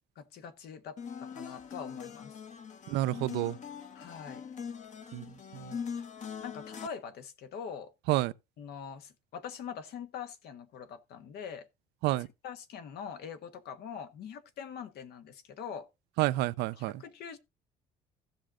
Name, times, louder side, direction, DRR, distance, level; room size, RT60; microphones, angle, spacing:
voice 1, 0.1-2.4 3.9-4.4 6.4-7.9 8.6-11.7 12.4-15.9 16.8-17.4, left 7 dB, 70° left, 1.3 m, -43 dB
sound 1, 1.0-6.9, left 6 dB, 45° left, 1.1 m, -42 dB
voice 2, 2.9-3.6 5.1-5.3 5.5-5.7 8.1-8.3 12.0-12.3 16.2-17.0, right 17 dB, 90° right, 0.5 m, -29 dB
14.5 x 6.2 x 3.8 m
cardioid pair, 110°, 17 cm